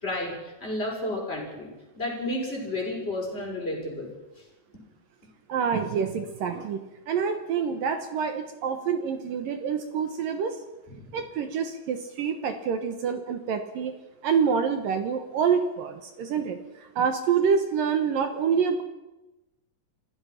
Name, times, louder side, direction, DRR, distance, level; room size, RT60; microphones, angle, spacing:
voice 1, 0.0-4.1 10.9-11.1, left 1 dB, 10° left, -2 dB, 6.0 m, -32 dB
voice 2, 5.5-10.6 11.1-13.9 14.2-18.8, right 6 dB, 65° right, 8 dB, 2.2 m, -27 dB
27.0 x 17.0 x 5.8 m, 1.0 s
omnidirectional pair, 5.4 m